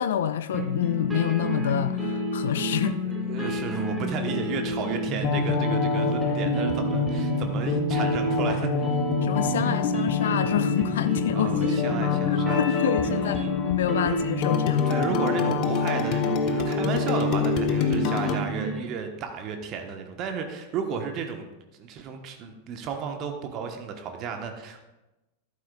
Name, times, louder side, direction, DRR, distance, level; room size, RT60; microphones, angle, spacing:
voice 1, 0.0-3.0 3.4-3.5 9.2-11.9 12.3-14.9, left 10 dB, 60° left, 0.5 m, -27 dB
sound 1, 0.5-18.8, right 1 dB, 10° right, 2.2 m, -30 dB
voice 2, 3.1-9.0 11.3-12.8 13.1-13.5 14.0-14.2 14.9-21.5 21.7-24.8, right 6 dB, 35° right, 1.2 m, -33 dB
sound 2, 5.2-18.4, left 7 dB, 40° left, 0.9 m, -27 dB
13.5 x 11.5 x 2.4 m
figure-of-eight pair, 90°, 0 cm